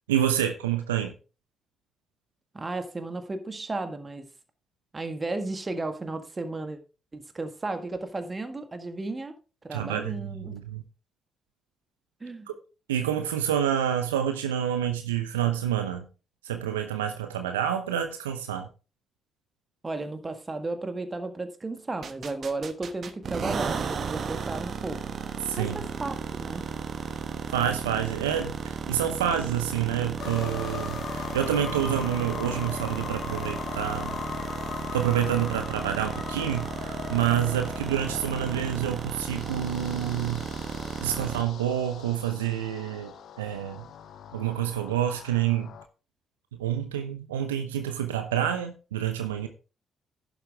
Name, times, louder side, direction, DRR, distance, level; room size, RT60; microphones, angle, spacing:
voice 1, 0.1-1.1 9.7-10.8 12.9-16.1 16.4-18.7 25.4-25.8 27.5-34.2 34.9-40.5 41.0-43.9 44.3-45.7 46.6-49.5, right 10 dB, 85° right, 0.7 m, -28 dB
voice 2, 2.5-4.3 4.9-6.8 7.1-9.3 9.6-10.6 12.2-12.5 19.8-25.0 25.6-26.6, right 2 dB, 30° right, 1.9 m, -34 dB
sound 1, 22.0-41.4, right 6 dB, 55° right, 1.1 m, -34 dB
sound 2, 30.2-45.8, left 8 dB, 60° left, 0.8 m, -40 dB
11.0 x 7.3 x 3.5 m
hypercardioid pair, 40°, 0 cm